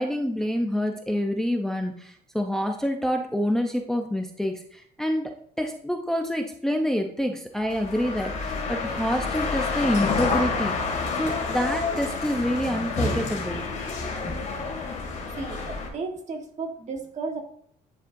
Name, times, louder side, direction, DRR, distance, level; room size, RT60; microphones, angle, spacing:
voice 1, 0.0-5.3 5.6-10.9 11.2-13.6 14.2-14.4, equal, 5° left, 3 dB, 0.6 m, -27 dB
sound 1, 7.7-15.9, left 4 dB, 50° left, 2.1 m, -29 dB
voice 2, 15.4-17.4, right 4 dB, 45° right, 3 dB, 1.4 m, -34 dB
10.5 x 4.2 x 2.6 m, 0.65 s
cardioid pair, 110°, 17 cm